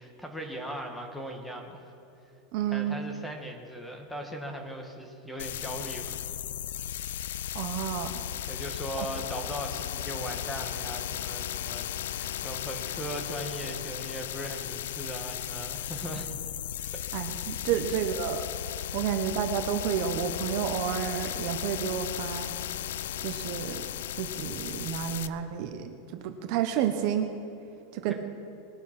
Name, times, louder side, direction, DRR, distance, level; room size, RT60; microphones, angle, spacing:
voice 1, 0.0-1.9 2.7-6.2 8.5-11.9 12.1-16.3 16.9-17.0 17.9-18.0 28.1-28.2, equal, 5° left, 2 dB, 1.2 m, -39 dB
voice 2, 2.5-3.0 7.5-8.1 9.0-9.1 17.1-18.4 18.9-22.5 23.2-23.8 24.2-27.3 27.9-28.1, right 9 dB, 45° right, 7 dB, 0.8 m, -30 dB
sound 1, 5.4-25.3, left 11 dB, 80° left, 0.4 m, -35 dB
20.0 x 7.0 x 5.8 m, 2.9 s
supercardioid pair, 170°, 0 cm